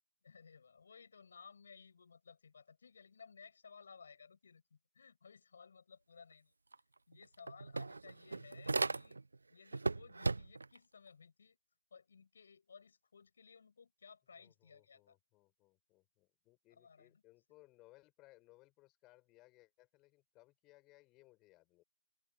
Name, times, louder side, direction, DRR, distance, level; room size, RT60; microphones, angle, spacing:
voice 1, 0.2-6.5 7.1-9.2 9.5-11.6 11.9-15.2 16.7-17.2, left 5 dB, 40° left, 6.7 m, -59 dB
sound 1, 6.7-6.8 7.1-9.4 9.7-10.8, right 3 dB, 60° right, 0.8 m, -37 dB
voice 2, 14.4-21.8, left 20 dB, 10° left, 7.7 m, -65 dB
open air
figure-of-eight pair, 155°, 0 cm